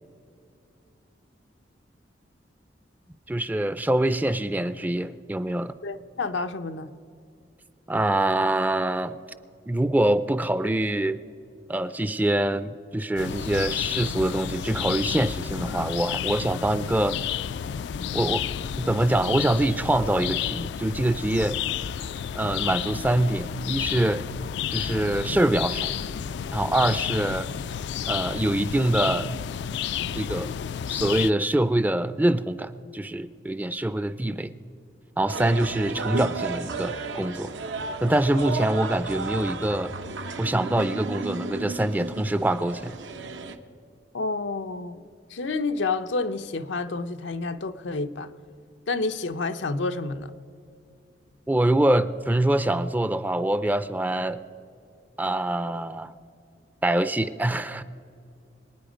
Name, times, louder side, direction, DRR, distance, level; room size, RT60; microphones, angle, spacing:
voice 1, 3.3-5.8 7.9-9.2 9.7-11.2 11.7-17.2 18.1-18.4 18.8-21.6 22.3-24.2 24.7-25.9 26.5-27.5 28.0-29.3 30.1-30.5 30.9-34.5 35.2-37.5 38.0-39.9 40.4-43.0 51.5-54.4 55.2-56.1 56.8-57.8, right 1 dB, 10° right, 0.4 m, -24 dB
voice 2, 5.8-6.9 44.1-45.0 45.3-48.3 48.9-50.3, left 3 dB, 90° left, 0.7 m, -29 dB
sound 1, 13.2-31.3, left 9 dB, 65° left, 0.3 m, -31 dB
sound 2, 35.3-43.6, right 4 dB, 85° right, 0.9 m, -33 dB
24.5 x 9.4 x 5.1 m
head